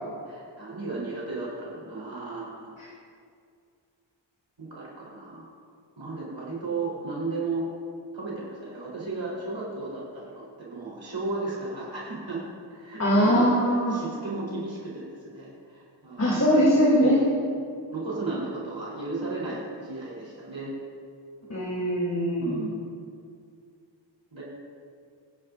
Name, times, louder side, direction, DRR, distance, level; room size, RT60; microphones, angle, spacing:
voice 1, 0.2-2.7 4.6-5.4 6.0-7.7 8.1-12.4 12.7-16.6 17.0-17.3 17.9-20.7 22.4-22.9 24.3-24.4, right 3 dB, 70° right, -6 dB, 4.0 m, -34 dB
voice 2, 13.0-13.9 16.2-17.1 21.5-22.6, equal, 35° left, -6 dB, 3.1 m, -21 dB
26.5 x 10.5 x 2.6 m, 2.3 s
wide cardioid pair, 80°, 46 cm